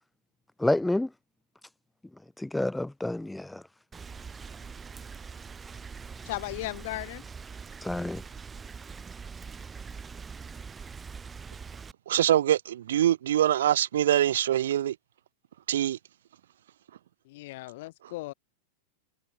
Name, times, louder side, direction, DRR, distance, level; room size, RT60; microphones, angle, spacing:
voice 1, 0.6-1.1 2.4-3.6 7.8-8.2, left 1 dB, 5° left, 0.5 m, -28 dB
Rain, 3.9-11.9, right 5 dB, 15° right, 3.3 m, -43 dB
voice 2, 6.3-7.2 17.3-18.3, left 19 dB, 50° left, 2.5 m, -36 dB
voice 3, 12.1-15.0 15.7-16.0 18.0-18.1, right 11 dB, 60° right, 0.5 m, -24 dB
figure-of-eight pair, 90°, 0 cm